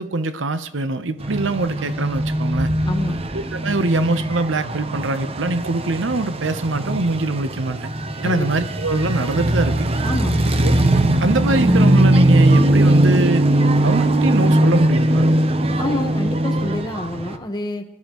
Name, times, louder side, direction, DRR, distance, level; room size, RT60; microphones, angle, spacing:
voice 1, 0.0-2.7 3.3-7.9 8.2-9.9 10.6-10.7 11.2-13.5 13.8-15.3, right 2 dB, 70° right, 11 dB, 0.8 m, -23 dB
sound 1, 1.2-17.4, right 1 dB, 30° right, 0.7 m, -19 dB
voice 2, 2.8-3.2 8.2-8.5 10.0-10.4 15.8-17.8, left 1 dB, 20° left, 4 dB, 1.2 m, -27 dB
18.5 x 12.0 x 3.0 m, 0.85 s
head